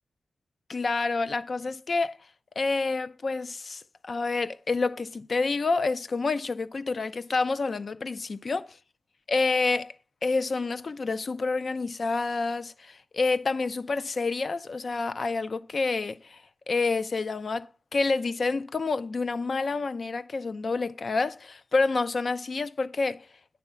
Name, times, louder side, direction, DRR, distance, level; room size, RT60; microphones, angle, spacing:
voice 1, 0.7-2.2 2.6-8.6 9.3-9.9 10.2-16.4 16.7-23.2, left 3 dB, 50° left, 0.4 m, -28 dB
9.6 x 3.5 x 5.6 m
wide cardioid pair, 130°, 0 cm